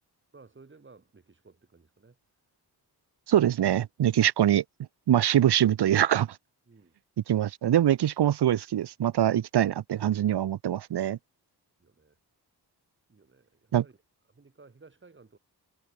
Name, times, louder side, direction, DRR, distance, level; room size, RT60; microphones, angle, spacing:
voice 1, 0.3-2.2 6.7-7.0 11.8-12.2 13.1-14.0 14.3-15.4, right 4 dB, 30° right, 6.4 m, -56 dB
voice 2, 3.3-4.6 5.1-6.4 7.3-11.2 13.7-13.8, right 11 dB, 75° right, 0.9 m, -23 dB
wide cardioid pair, 165°, 40 cm